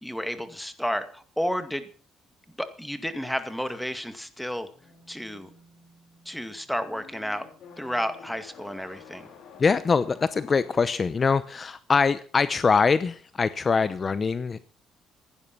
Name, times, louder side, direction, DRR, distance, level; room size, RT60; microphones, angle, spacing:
voice 1, 0.0-1.9 2.6-4.7 5.1-5.5 6.3-7.5 7.8-9.3, equal, ahead, 10 dB, 2.2 m, -31 dB
sound 1, 3.5-11.5, left 6 dB, 65° left, 4.7 m, -51 dB
voice 2, 9.6-14.6, left 5 dB, 35° left, 15 dB, 0.8 m, -23 dB
16.0 x 11.0 x 6.1 m, 0.42 s
supercardioid pair, 80°, 0 cm